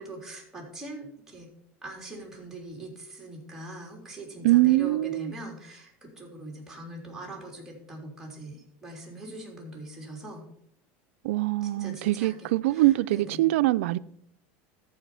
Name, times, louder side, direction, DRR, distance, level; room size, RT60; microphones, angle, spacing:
voice 1, 0.0-1.5 1.8-10.4 11.6-13.5, right 1 dB, 5° right, 3.5 m, -42 dB
voice 2, 4.4-5.3 11.2-14.0, right 17 dB, 85° right, 0.4 m, -23 dB
14.0 x 5.0 x 5.5 m
supercardioid pair, 130°, 7 cm